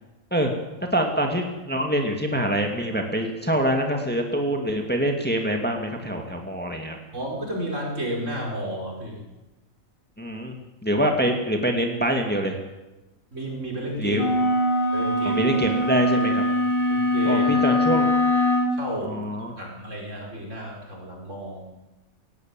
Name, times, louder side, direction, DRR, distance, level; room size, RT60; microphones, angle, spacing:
voice 1, 0.9-7.0 10.2-10.5 10.8-12.6 14.0-14.3 15.2-16.4 17.2-18.1 19.1-19.6, equal, 5° left, 3 dB, 2.2 m, -25 dB
voice 2, 7.1-9.2 13.3-14.2 14.9-15.4 16.9-17.8 18.7-19.2 19.5-21.7, right 1 dB, 60° right, -1 dB, 5.4 m, -32 dB
sound 1, 14.1-18.8, left 1 dB, 50° left, 2.9 m, -22 dB
18.5 x 15.5 x 9.1 m, 1.1 s
omnidirectional pair, 1.4 m